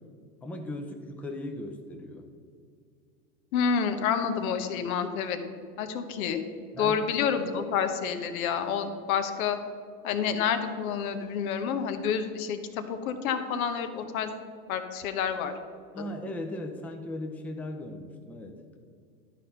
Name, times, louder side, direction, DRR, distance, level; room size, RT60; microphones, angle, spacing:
voice 1, 0.4-2.3 6.7-7.0 15.9-18.8, left 1 dB, 5° left, 3 dB, 0.6 m, -38 dB
voice 2, 3.5-5.4 5.8-6.4 6.8-9.6 10.0-14.3 14.7-15.5 16.0-16.1, left 7 dB, 65° left, 8 dB, 1.0 m, -29 dB
11.5 x 4.2 x 5.5 m, 2.2 s
hypercardioid pair, 105°, 45 cm